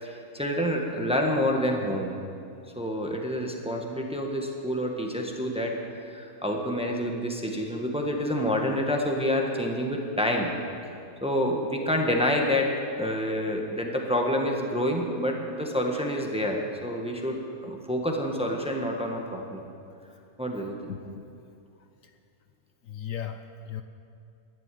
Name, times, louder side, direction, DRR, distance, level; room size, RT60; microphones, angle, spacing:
voice 1, 0.0-2.1 2.7-10.5 11.2-12.7 13.0-19.6 20.4-20.8, left 1 dB, 5° right, 1 dB, 1.3 m, -28 dB
voice 2, 20.9-21.3 21.8-22.1 22.8-23.8, left 9 dB, 65° left, 7 dB, 1.0 m, -38 dB
12.5 x 10.5 x 9.2 m, 2.5 s
omnidirectional pair, 1.5 m